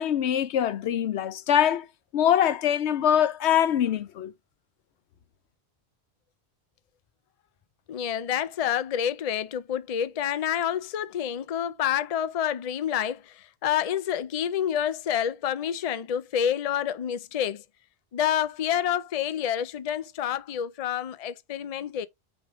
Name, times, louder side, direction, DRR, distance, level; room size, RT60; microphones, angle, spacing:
voice 1, 0.0-1.9 2.1-4.3, left 10 dB, 85° left, 0.9 m, -23 dB
voice 2, 7.9-17.6 18.1-22.1, left 9 dB, 45° left, 0.5 m, -28 dB
6.2 x 3.5 x 4.8 m
omnidirectional pair, 1.1 m